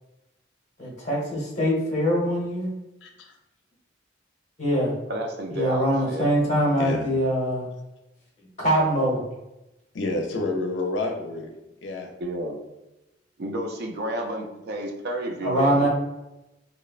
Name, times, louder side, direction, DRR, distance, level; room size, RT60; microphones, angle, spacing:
voice 1, 0.8-2.7 4.6-4.9 5.5-7.7 8.6-9.2 15.4-15.9, equal, 40° left, -4 dB, 1.0 m, -23 dB
voice 2, 3.0-3.3 6.8-7.1 9.9-11.5 11.8-12.1, left 2 dB, 80° left, 3 dB, 0.5 m, -29 dB
voice 3, 5.1-6.3 12.2-12.6 13.4-15.9, right 1 dB, 60° right, 2 dB, 0.4 m, -31 dB
2.9 x 2.1 x 2.4 m, 0.96 s
head